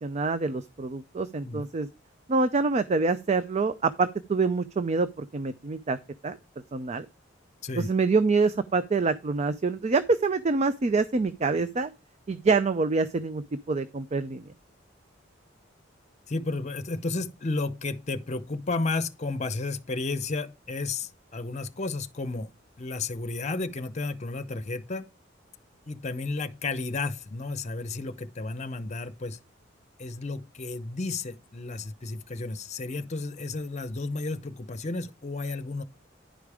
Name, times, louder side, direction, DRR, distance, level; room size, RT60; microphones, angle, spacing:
voice 1, 0.0-1.9 2.3-6.0 6.2-6.4 6.7-7.1 7.8-11.9 12.3-14.5, right 4 dB, 35° right, 0.4 m, -26 dB
voice 2, 7.6-7.9 16.3-22.5 22.8-25.1 25.9-29.4 30.0-35.8, left 3 dB, 35° left, 0.7 m, -32 dB
10.5 x 5.1 x 4.8 m
head